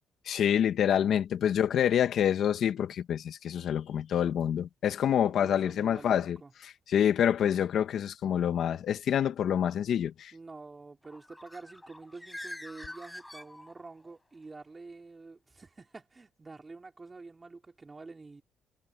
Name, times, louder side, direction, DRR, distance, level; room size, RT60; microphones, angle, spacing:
voice 1, 0.3-6.4 6.6-10.3, left 9 dB, 65° left, 1.7 m, -27 dB
voice 2, 5.2-6.5 10.3-18.4, right 3 dB, 25° right, 4.9 m, -48 dB
Bird, 11.0-14.1, left 1 dB, 10° left, 6.2 m, -45 dB
cardioid pair, 90°, 0 cm